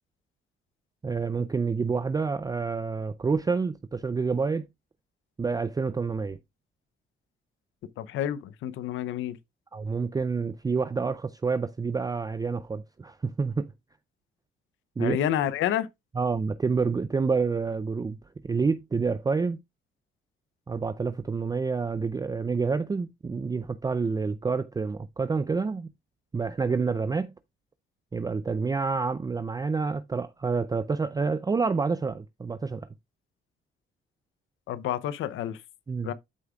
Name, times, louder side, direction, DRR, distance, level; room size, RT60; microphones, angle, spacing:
voice 1, 1.0-4.7 5.4-6.4 9.7-13.7 15.0-15.2 16.2-18.2 18.4-19.6 20.7-25.9 26.3-27.3 28.1-32.9 35.9-36.1, right 4 dB, 20° right, 0.4 m, -28 dB
voice 2, 8.0-9.4 15.0-15.9 34.7-35.6 36.0-36.1, left 11 dB, 80° left, 0.7 m, -29 dB
12.5 x 4.9 x 2.3 m
cardioid pair, 90°, 20 cm